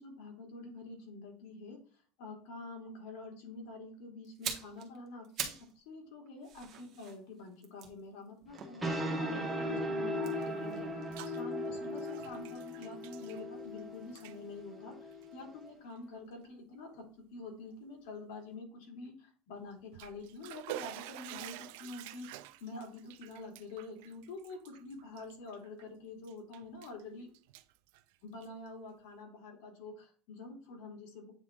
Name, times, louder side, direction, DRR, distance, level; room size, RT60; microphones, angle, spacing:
voice 1, 0.0-1.8 2.2-10.9 11.3-17.0 17.3-22.3 22.6-27.3 28.2-31.3, left 3 dB, 75° left, 0 dB, 2.8 m, -47 dB
sound 1, 4.2-5.8 6.1-9.3 10.1-12.2 12.4-12.6, right 8 dB, 35° right, 1.4 m, -44 dB
sound 2, 8.5-15.7, equal, 5° right, 1.3 m, -38 dB
Bathtub (filling or washing), 10.8-11.4 11.7-13.8 14.1-14.4 15.1-15.3 15.9-16.0 16.4-16.5 19.7-25.8 26.2-27.0 27.3-28.7, right 14 dB, 80° right, 0.5 m, -48 dB
8.8 x 3.5 x 3.8 m, 0.43 s
cardioid pair, 165°, 0 cm